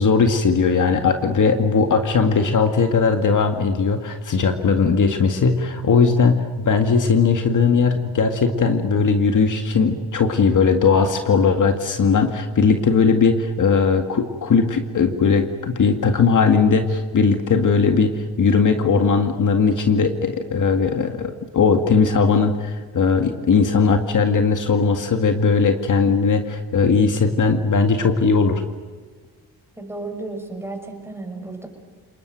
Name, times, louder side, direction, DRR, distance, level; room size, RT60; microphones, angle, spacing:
voice 1, 0.0-28.6, left 5 dB, 55° left, 6 dB, 2.0 m, -18 dB
voice 2, 29.8-31.7, right 2 dB, 5° right, 3 dB, 6.4 m, -33 dB
29.5 x 20.0 x 9.3 m, 1.4 s
cardioid pair, 95°, 38 cm